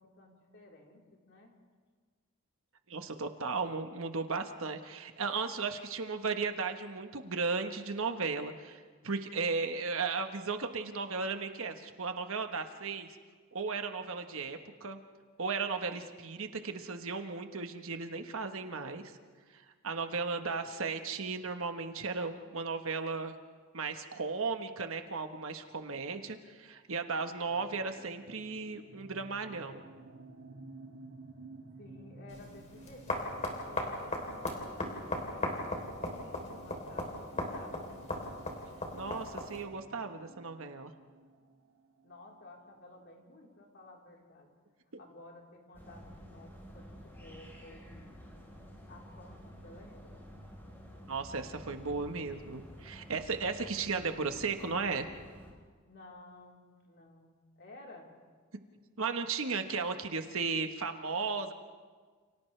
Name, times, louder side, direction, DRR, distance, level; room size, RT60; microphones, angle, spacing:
voice 1, 0.0-1.5 3.2-3.3 31.8-35.6 36.0-38.1 42.0-44.5 45.0-48.2 48.9-50.2 55.9-58.1, left 2 dB, 55° left, -2 dB, 4.0 m, -54 dB
voice 2, 2.9-13.1 13.5-15.0 15.4-19.0 19.8-23.3 23.7-29.8 38.9-40.9 51.1-55.1 59.0-61.5, right 4 dB, 65° right, 6 dB, 1.3 m, -35 dB
sound 1, 27.1-42.7, right 2 dB, 90° right, 2.1 m, -54 dB
sound 2, 32.3-39.6, left 1 dB, 30° left, 3.6 m, -38 dB
sound 3, 45.7-55.5, equal, 10° left, 4.4 m, -51 dB
29.5 x 29.0 x 3.4 m, 1.6 s
head